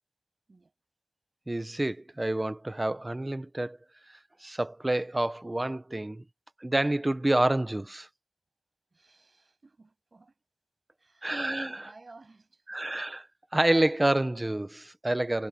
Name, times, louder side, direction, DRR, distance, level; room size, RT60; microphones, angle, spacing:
voice 1, 1.5-3.8 4.4-6.2 6.6-8.1 11.2-11.8 12.7-13.3 13.5-15.5, right 1 dB, 20° right, 1.1 m, -28 dB
voice 2, 8.9-10.4 11.0-12.9, right 3 dB, 45° right, 7.4 m, -56 dB
wide cardioid pair, 110°, 0 cm